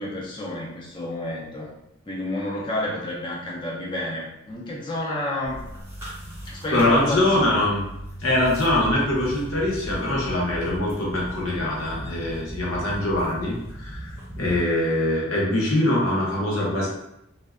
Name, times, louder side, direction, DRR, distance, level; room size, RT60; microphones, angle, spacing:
voice 1, 0.0-1.7 2.1-5.7 6.4-7.7, left 1 dB, 25° left, -5 dB, 0.4 m, -30 dB
sound 1, 5.4-14.6, equal, 10° right, 0.6 m, -37 dB
voice 2, 6.7-7.8 8.2-16.9, left 1 dB, 85° left, -4 dB, 0.8 m, -23 dB
2.5 x 2.1 x 2.3 m, 0.82 s
head